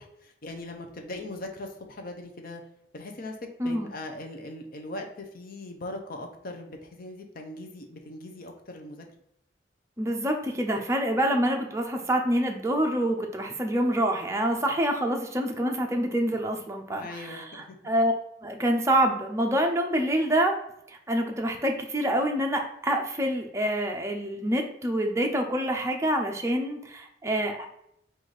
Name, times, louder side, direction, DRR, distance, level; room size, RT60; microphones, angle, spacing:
voice 1, 0.0-2.6 2.9-3.4 3.6-9.0 16.9-17.8, left 2 dB, 50° left, 4 dB, 0.7 m, -40 dB
voice 2, 3.6-3.9 10.0-18.1 18.4-20.6 20.9-27.7, right 1 dB, 15° right, 2 dB, 0.6 m, -26 dB
4.0 x 2.6 x 4.7 m, 0.74 s
head